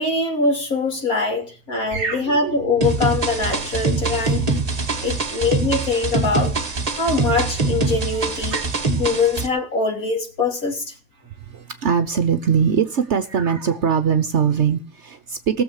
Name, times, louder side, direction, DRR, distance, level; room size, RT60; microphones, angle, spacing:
voice 1, 0.0-6.5 6.9-8.6 9.0-10.8, left 3 dB, 60° left, 2 dB, 3.3 m, -23 dB
voice 2, 1.9-2.5 8.5-8.6 11.5-15.6, right 7 dB, 55° right, 11 dB, 1.0 m, -21 dB
sound 1, 2.8-9.5, right 3 dB, 25° right, 1.2 m, -23 dB
18.0 x 7.2 x 6.6 m, 0.38 s
omnidirectional pair, 1.7 m